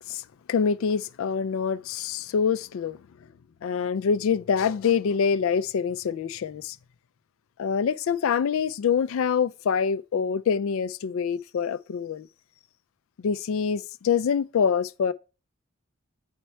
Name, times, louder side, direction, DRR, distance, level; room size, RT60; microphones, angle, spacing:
voice 1, 0.5-3.0 3.6-6.8 7.6-12.3 13.2-15.1, left 6 dB, 70° left, 0.3 m, -25 dB
8.1 x 4.3 x 4.3 m
head